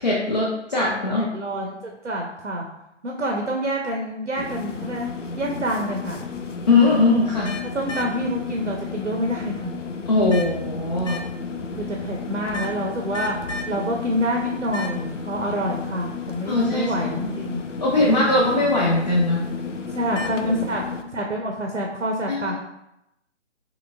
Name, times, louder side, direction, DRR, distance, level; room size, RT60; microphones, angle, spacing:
voice 1, 0.0-1.3 6.7-7.6 10.1-11.2 16.5-17.3 17.8-19.5 20.5-20.7 22.3-22.5, left 2 dB, 35° left, -5 dB, 0.6 m, -20 dB
voice 2, 1.2-2.7 3.0-5.1 5.4-6.2 7.7-9.7 11.8-17.6 19.9-20.8 21.1-22.5, equal, 85° right, 0 dB, 0.7 m, -27 dB
sound 1, 4.3-21.0, left 4 dB, 85° left, 0.5 m, -32 dB
3.9 x 3.1 x 2.3 m, 0.85 s
figure-of-eight pair, 145°, 36 cm